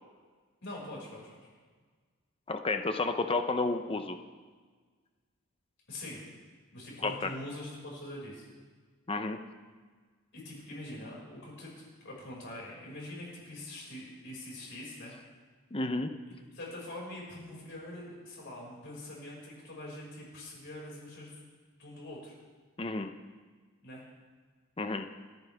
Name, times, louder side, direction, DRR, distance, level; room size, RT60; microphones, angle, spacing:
voice 1, 0.6-1.5 5.9-6.2 6.7-8.5 10.3-15.1 16.5-21.4 21.8-22.3 23.8-24.0, left 1 dB, 55° left, -4 dB, 5.8 m, -44 dB
voice 2, 2.5-4.2 7.0-7.3 9.1-9.4 15.7-16.1 22.8-23.1 24.8-25.1, left 3 dB, 25° left, 7 dB, 0.8 m, -31 dB
30.0 x 10.5 x 3.6 m, 1.5 s
head